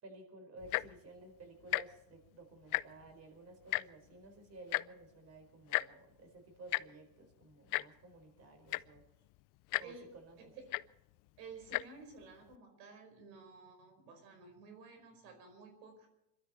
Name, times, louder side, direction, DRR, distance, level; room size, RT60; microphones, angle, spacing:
voice 1, 0.0-9.1 9.8-10.5, right 2 dB, 30° right, 5 dB, 4.6 m, -54 dB
Tick-tock, 0.6-1.0 1.6-1.8 2.1-2.3 2.6-3.1 3.7-3.8 4.7-4.8 5.7-5.9 6.7-6.8 7.7-7.8 8.4-8.5 8.7-9.0 9.7-9.8 10.7-10.8 11.6-11.8 12.5-12.6, left 22 dB, 45° left, 0.5 m, -33 dB
voice 2, 11.4-16.1, right 4 dB, 90° right, 6 dB, 5.0 m, -53 dB
25.0 x 12.5 x 4.4 m, 0.88 s
supercardioid pair, 130°, 48 cm